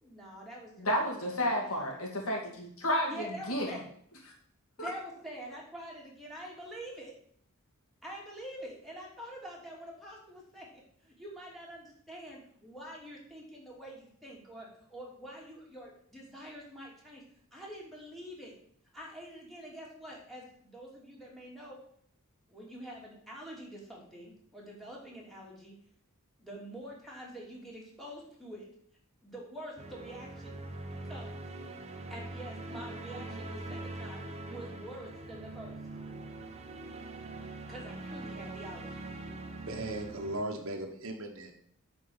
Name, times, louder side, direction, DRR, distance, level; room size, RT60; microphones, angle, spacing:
voice 1, 0.0-1.8 3.1-3.9 4.8-7.1 8.0-17.2 17.5-18.6 18.9-21.8 22.5-25.7 26.4-28.7 29.2-30.5 30.9-31.4 32.1-35.8 37.7-39.1, equal, ahead, -4 dB, 2.9 m, -46 dB
voice 2, 0.8-3.8 4.8-4.9, equal, 70° left, 0 dB, 2.3 m, -31 dB
sound 1, 29.8-40.4, right 2 dB, 30° right, 1.0 m, -43 dB
voice 3, 39.7-41.5, right 1 dB, 65° right, 2 dB, 1.3 m, -37 dB
9.6 x 4.6 x 7.2 m, 0.62 s
head